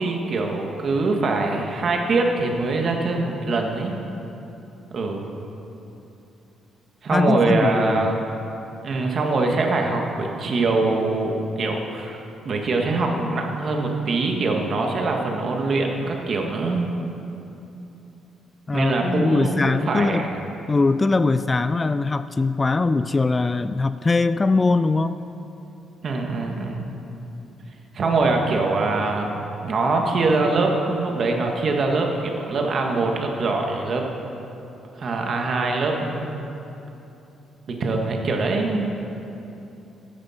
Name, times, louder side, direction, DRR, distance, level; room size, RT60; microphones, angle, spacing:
voice 1, 0.0-3.9 4.9-5.3 7.0-8.2 8.8-12.2 12.4-16.9 18.7-20.2 26.0-26.9 27.9-29.4 29.6-34.0 35.0-36.4 37.7-38.9, right 3 dB, 50° right, 2 dB, 1.7 m, -23 dB
voice 2, 7.1-8.2 18.7-20.3 20.7-25.2, left 3 dB, 25° left, 12 dB, 0.3 m, -21 dB
14.5 x 10.0 x 4.4 m, 2.9 s
cardioid pair, 90°, 0 cm